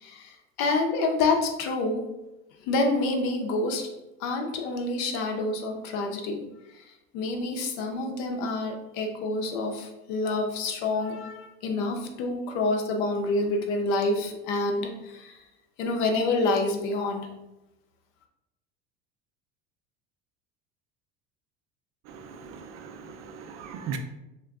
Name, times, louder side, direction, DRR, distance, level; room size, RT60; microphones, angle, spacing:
voice 1, 0.0-2.0 2.6-3.9 4.2-6.4 6.7-6.8 7.1-15.4 15.8-17.3, left 2 dB, 75° left, 3 dB, 0.6 m, -27 dB
voice 2, 22.1-24.0, right 6 dB, 50° right, 6 dB, 0.5 m, -39 dB
2.3 x 2.2 x 3.6 m, 0.95 s
supercardioid pair, 95°, 34 cm